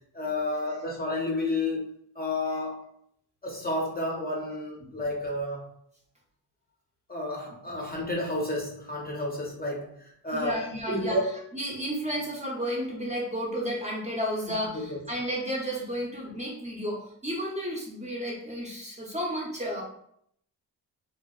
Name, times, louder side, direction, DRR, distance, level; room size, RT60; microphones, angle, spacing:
voice 1, 0.1-2.8 3.4-5.7 7.1-11.3 14.7-15.0, left 1 dB, 25° left, -2 dB, 0.6 m, -31 dB
voice 2, 10.3-19.8, equal, 15° right, -3 dB, 0.6 m, -32 dB
2.7 x 2.1 x 2.2 m, 0.68 s
cardioid pair, 95°, 40 cm